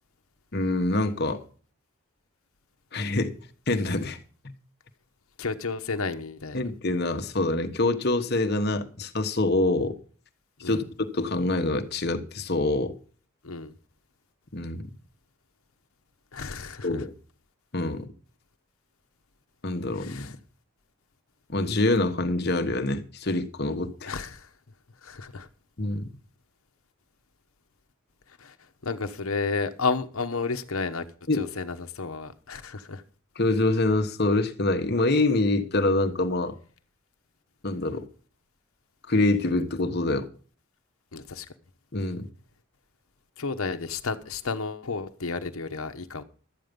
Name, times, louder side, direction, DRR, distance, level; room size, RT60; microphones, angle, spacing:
voice 1, 0.5-1.4 2.9-3.3 3.7-4.2 4.4-4.5 6.5-9.9 10.6-10.9 11.1-12.9 14.5-14.9 16.8-17.1 17.7-18.1 19.6-20.4 21.5-24.1 25.8-26.1 31.3-31.4 33.4-36.6 37.6-38.1 39.1-40.3 41.9-42.3, left 2 dB, 50° left, 1.3 m, -25 dB
voice 2, 5.4-6.6 10.6-10.9 13.4-13.7 16.3-17.0 19.9-20.3 24.0-24.5 25.0-25.5 28.3-31.0 31.3-33.0 41.1-41.5 43.4-46.2, left 4 dB, 75° left, 1.1 m, -32 dB
12.5 x 9.5 x 5.3 m
head